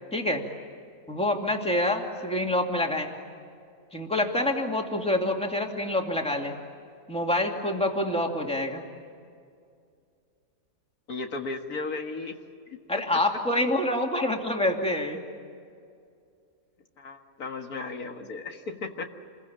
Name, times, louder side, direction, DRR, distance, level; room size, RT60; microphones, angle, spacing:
voice 1, 0.1-0.4 1.1-3.1 3.9-6.5 7.1-8.8 12.9-15.2, left 1 dB, 5° left, 2 dB, 2.6 m, -26 dB
voice 2, 11.1-12.4 12.7-12.8 17.0-19.1, left 3 dB, 70° left, 4 dB, 2.1 m, -35 dB
28.5 x 22.0 x 8.9 m, 2.3 s
omnidirectional pair, 1.6 m